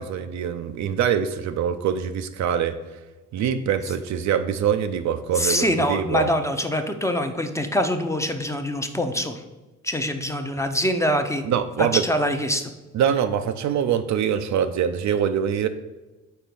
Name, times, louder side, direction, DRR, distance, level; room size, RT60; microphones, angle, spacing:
voice 1, 0.0-2.8 3.3-6.3 11.5-12.1 12.9-15.7, right 8 dB, 55° right, 9 dB, 0.5 m, -24 dB
voice 2, 5.3-9.4 9.8-11.4 11.8-12.7, equal, 10° left, 6 dB, 0.6 m, -24 dB
4.5 x 4.1 x 5.2 m, 1.1 s
hypercardioid pair, 50°, 34 cm